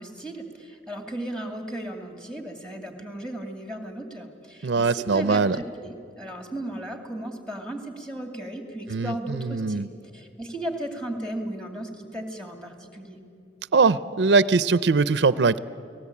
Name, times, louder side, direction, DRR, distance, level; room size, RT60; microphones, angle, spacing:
voice 1, 0.0-13.2, right 1 dB, 5° left, 4 dB, 2.4 m, -35 dB
voice 2, 4.6-5.6 8.9-9.9 13.7-15.6, right 4 dB, 75° right, 16 dB, 0.5 m, -21 dB
29.5 x 19.0 x 8.5 m, 2.6 s
head